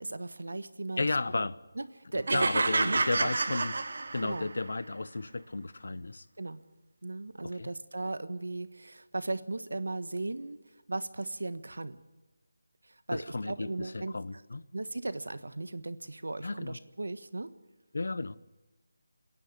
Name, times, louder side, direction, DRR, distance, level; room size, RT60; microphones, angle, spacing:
voice 1, 0.0-1.1 1.3-1.5 1.7-2.5 2.8-3.6 4.2-4.5 6.4-6.6 7.0-10.6 10.9-12.0 12.8-14.1 14.7-17.5, right 2 dB, 85° right, 1.4 m, -37 dB
voice 2, 1.0-1.6 2.3-3.7 4.1-6.3 7.4-7.7 13.1-14.7 16.4-16.8 17.9-18.3, left 3 dB, 70° left, 0.8 m, -33 dB
sound 1, 2.3-4.6, right 3 dB, 60° right, 1.3 m, -29 dB
27.5 x 11.0 x 10.0 m
figure-of-eight pair, 170°, 0 cm